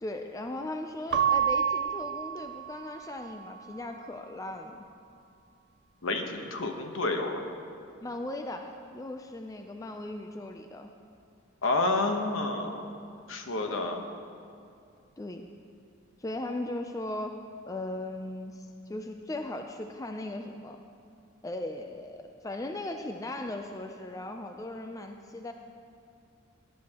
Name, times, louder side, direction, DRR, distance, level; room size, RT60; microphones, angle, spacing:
voice 1, 0.0-4.8 8.0-10.9 13.6-13.8 15.2-15.4 16.2-17.4 17.7-20.8 21.4-25.5, left 1 dB, 15° left, 5 dB, 0.3 m, -38 dB
Keyboard (musical) / Bell, 1.1-3.5, right 8 dB, 55° right, 0.4 m, -29 dB
voice 2, 6.0-7.4 11.6-12.9 13.3-14.0, left 2 dB, 70° left, 4 dB, 1.0 m, -29 dB
17.0 x 10.5 x 2.9 m, 2.4 s
head